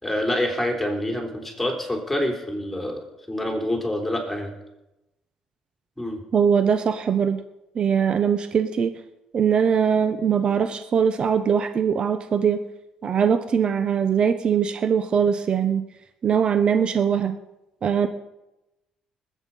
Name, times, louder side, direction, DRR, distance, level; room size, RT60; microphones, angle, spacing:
voice 1, 0.0-4.5 6.0-6.2, left 1 dB, 5° left, 2 dB, 3.5 m, -27 dB
voice 2, 6.3-7.4 7.7-9.0 9.3-12.6 13.0-15.8 16.2-17.4 17.8-18.1, right 7 dB, 45° right, 9 dB, 0.9 m, -21 dB
20.5 x 8.3 x 5.4 m, 0.95 s
cardioid pair, 105°, 2 cm